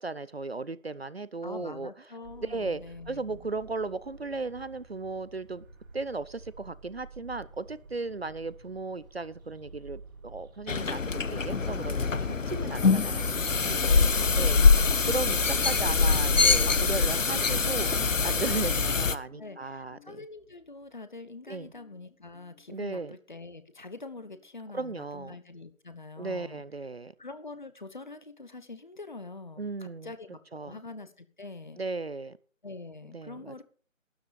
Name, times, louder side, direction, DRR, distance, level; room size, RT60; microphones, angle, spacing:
voice 1, 0.0-1.9 2.4-2.8 3.1-5.6 5.9-13.2 13.5-13.8 14.4-14.6 15.0-17.9 18.2-20.2 21.5-21.7 22.7-23.2 24.7-25.3 26.2-27.1 29.6-30.1 30.5-30.8 31.8-32.4 33.1-33.6, right 3 dB, 50° right, 17 dB, 0.7 m, -36 dB
voice 2, 1.4-3.5 13.8-15.0 19.4-26.6 27.2-31.8 32.6-33.6, left 3 dB, 35° left, 12 dB, 1.0 m, -45 dB
sound 1, 2.2-14.2, right 3 dB, 15° right, 2.2 m, -51 dB
sound 2, 10.7-19.1, left 4 dB, 70° left, 1.0 m, -24 dB
sound 3, 12.0-18.8 19.1-20.7 21.7-22.0 22.3-22.6 24.2-24.4 24.8-25.0 26.6-26.7, left 3 dB, 85° left, 6.3 m, -48 dB
12.5 x 10.5 x 5.2 m, 0.39 s
figure-of-eight pair, 160°, 40 cm